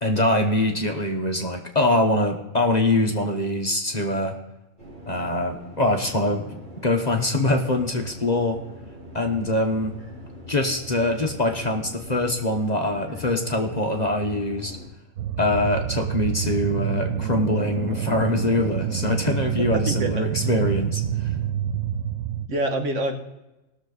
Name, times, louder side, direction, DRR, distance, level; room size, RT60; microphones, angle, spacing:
voice 1, 0.0-4.4 5.1-8.6 9.1-9.9 10.5-14.7 15.4-21.3, left 1 dB, 35° left, 3 dB, 1.1 m, -23 dB
sound 1, 4.8-14.9, left 1 dB, 35° right, 4.3 m, -42 dB
sound 2, 15.2-22.5, right 10 dB, 80° right, 1.0 m, -27 dB
voice 2, 19.7-20.5 22.5-23.2, right 1 dB, 60° right, 4 dB, 1.6 m, -27 dB
19.0 x 6.9 x 4.0 m, 1.0 s
omnidirectional pair, 1.4 m